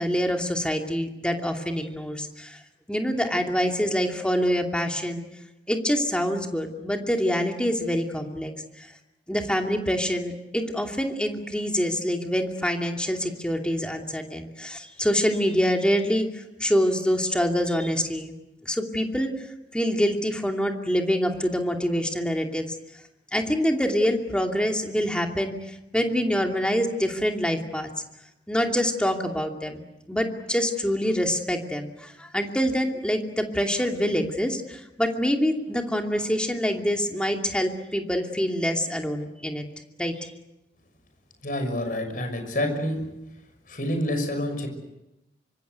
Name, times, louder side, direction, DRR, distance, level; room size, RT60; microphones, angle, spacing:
voice 1, 0.0-2.6 2.9-5.2 5.7-8.5 8.8-8.9 9.3-19.3 19.7-22.6 23.3-27.9 28.5-39.7 40.0-40.3, equal, 5° left, 2 dB, 2.6 m, -26 dB
voice 2, 41.4-43.0 43.7-44.7, left 1 dB, 50° left, 6 dB, 6.2 m, -27 dB
25.5 x 25.5 x 8.2 m, 0.93 s
head